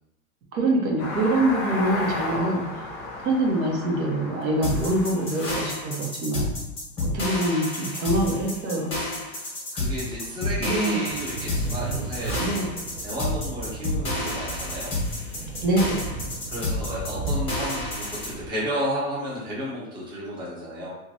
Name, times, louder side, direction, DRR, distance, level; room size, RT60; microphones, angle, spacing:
voice 1, 0.5-2.9 3.2-6.5 7.0-8.9 10.6-11.0 12.4-12.7 15.6-16.0, right 1 dB, 70° right, -1 dB, 1.0 m, -25 dB
sound 1, 1.0-6.0, left 2 dB, 30° left, 0.5 m, -33 dB
sound 2, 4.6-18.3, left 2 dB, 15° left, 0.9 m, -30 dB
voice 2, 9.3-12.7 13.0-14.9 16.5-20.9, equal, 10° right, -8 dB, 0.8 m, -32 dB
Thunder / Rain, 11.0-18.5, right 4 dB, 50° right, 0.8 m, -35 dB
3.0 x 2.5 x 2.7 m, 0.91 s
supercardioid pair, 145°, 43 cm